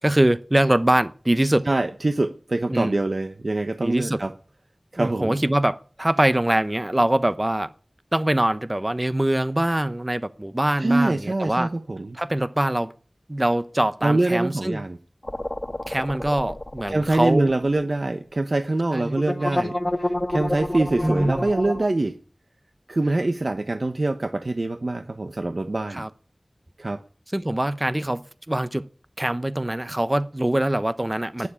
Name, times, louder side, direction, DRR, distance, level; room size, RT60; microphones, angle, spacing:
voice 1, 0.0-1.7 2.7-3.0 3.8-4.2 5.0-7.7 8.1-11.7 12.1-12.9 13.3-14.8 15.9-17.5 18.9-19.2 21.0-21.5 25.9-26.1 27.3-28.9 29.2-31.5, right 1 dB, 30° right, 0.9 m, -23 dB
voice 2, 1.7-4.3 4.9-5.4 10.8-12.2 14.0-15.0 16.9-22.2 22.9-26.0 26.8-27.0 31.4-31.5, right 2 dB, 65° right, 1.0 m, -24 dB
sound 1, 15.2-17.8 18.1-18.2 19.1-21.8, left 1 dB, 30° left, 1.2 m, -29 dB
11.5 x 9.8 x 9.9 m
wide cardioid pair, 40°, 0 cm